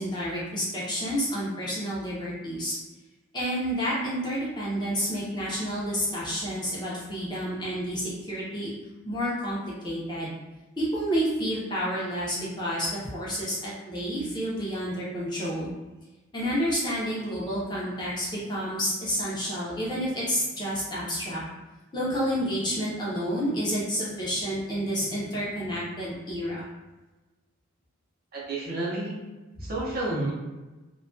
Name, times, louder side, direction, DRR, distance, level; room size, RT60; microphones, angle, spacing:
voice 1, 0.0-2.8 3.3-8.7 9.0-10.3 10.8-15.7 16.3-21.4 21.9-26.6, equal, 20° left, -7 dB, 0.5 m, -29 dB
voice 2, 28.3-29.2 29.6-30.3, right 2 dB, 45° right, -5 dB, 0.6 m, -30 dB
2.2 x 2.2 x 2.5 m, 1.1 s
head